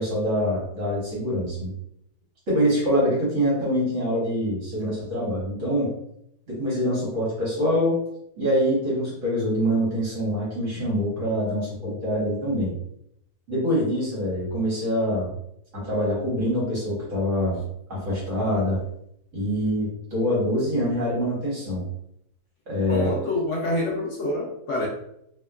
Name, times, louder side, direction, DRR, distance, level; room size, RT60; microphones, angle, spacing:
voice 1, 0.0-1.7 2.5-5.9 6.5-8.0 8.4-12.7 13.5-15.3 15.7-17.6 17.9-18.8 19.3-21.8 22.7-23.1, equal, 55° right, -6 dB, 1.3 m, -25 dB
voice 2, 22.9-24.9, left 2 dB, 75° left, -2 dB, 0.7 m, -27 dB
2.8 x 2.1 x 2.3 m, 0.76 s
omnidirectional pair, 1.8 m